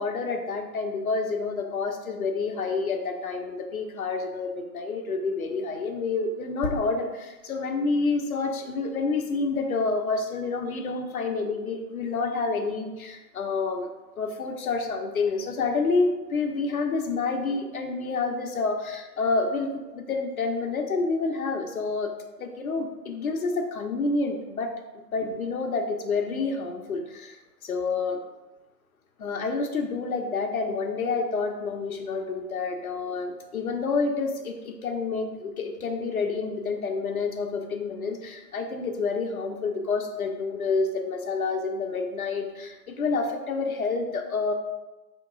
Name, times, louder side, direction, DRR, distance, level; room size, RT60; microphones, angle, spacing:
voice 1, 0.0-13.9 14.2-22.1 22.4-28.2 29.2-44.5, left 4 dB, 55° left, 4 dB, 0.8 m, -28 dB
4.5 x 2.9 x 3.7 m, 1.1 s
figure-of-eight pair, 145°, 50 cm